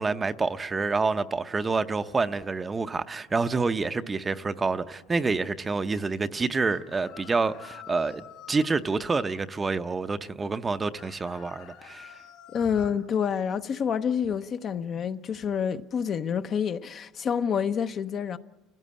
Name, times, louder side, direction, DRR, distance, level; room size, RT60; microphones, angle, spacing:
voice 1, 0.0-12.2, right 4 dB, 20° right, 0.7 m, -28 dB
sound 1, 6.6-8.8 10.9-13.0, left 10 dB, 80° left, 4.2 m, -48 dB
voice 2, 12.5-18.4, left 7 dB, 40° left, 0.7 m, -28 dB
29.0 x 16.5 x 8.6 m
cardioid pair, 125°, 0 cm